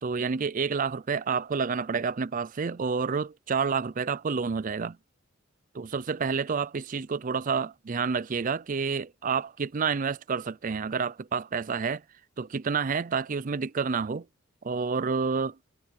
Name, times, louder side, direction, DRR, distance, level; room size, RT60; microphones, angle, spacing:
voice 1, 0.0-5.0 5.7-12.0 12.4-14.2 14.6-15.6, right 5 dB, 40° right, 0.5 m, -29 dB
head